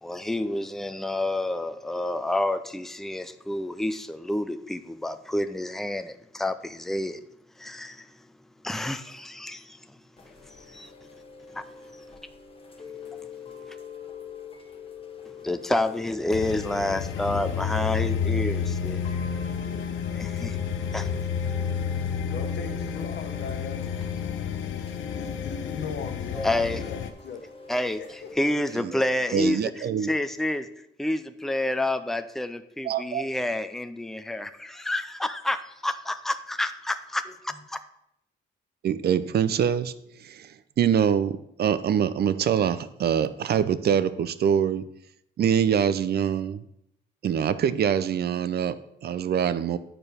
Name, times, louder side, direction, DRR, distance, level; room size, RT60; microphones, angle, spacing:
voice 1, 0.0-7.2 7.6-8.1 8.6-9.8 10.6-10.9 15.4-19.0 20.1-20.6 20.9-21.1 26.3-26.9 27.7-29.7 30.1-30.7 31.0-37.2, left 1 dB, ahead, 10 dB, 0.5 m, -29 dB
Chime / Rain, 10.2-28.6, left 4 dB, 25° left, 1.0 m, -44 dB
sound 1, 16.3-27.1, left 7 dB, 75° left, 0.6 m, -30 dB
voice 2, 22.3-23.9 24.7-26.4 26.8-27.5 28.0-28.8, left 5 dB, 60° left, 7 dB, 1.1 m, -39 dB
voice 3, 29.3-30.1 32.8-33.2 38.8-44.8 45.4-46.6 47.2-49.8, right 8 dB, 55° right, 14 dB, 0.6 m, -24 dB
8.8 x 4.5 x 5.1 m, 0.76 s
cardioid pair, 90°, 20 cm